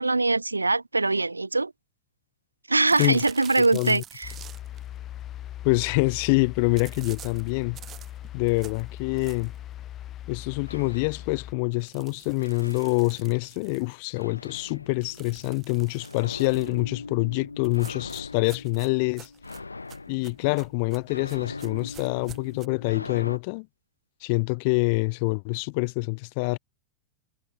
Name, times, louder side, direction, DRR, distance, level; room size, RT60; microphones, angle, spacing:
voice 1, 0.0-1.7 2.7-4.3, right 3 dB, 80° right, 0.3 m, -23 dB
sound 1, 2.8-4.9 6.8-9.7 10.1-10.2 10.6-10.7 10.9-11.0 11.7-14.2 15.0-16.8 17.6-22.7, right 11 dB, 30° right, 2.2 m, -48 dB
voice 2, 3.7-4.0 5.6-7.8 8.3-9.5 10.3-19.3 20.1-23.7 24.2-26.6, left 31 dB, 45° left, 0.3 m, -26 dB
sound 2, 4.2-11.5, left 12 dB, 30° left, 3.6 m, -40 dB
sound 3, 10.7-11.8 12.4-13.6 14.1-23.4, left 3 dB, 80° left, 3.8 m, -42 dB
figure-of-eight pair, 90°, 0 cm